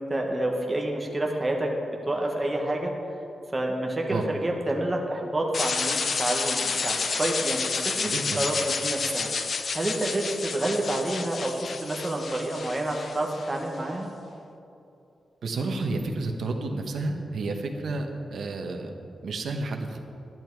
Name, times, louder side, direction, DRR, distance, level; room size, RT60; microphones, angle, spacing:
voice 1, 0.0-1.8 2.1-2.9 3.5-8.1 8.4-9.3 9.7-14.1, right 1 dB, 15° right, 0 dB, 1.2 m, -28 dB
sound 1, 5.5-13.6, left 5 dB, 45° left, 0.6 m, -30 dB
voice 2, 8.0-8.4 15.4-18.9 19.2-20.0, right 3 dB, 65° right, 4 dB, 1.1 m, -31 dB
11.0 x 10.5 x 4.6 m, 2.7 s
wide cardioid pair, 165°, 0 cm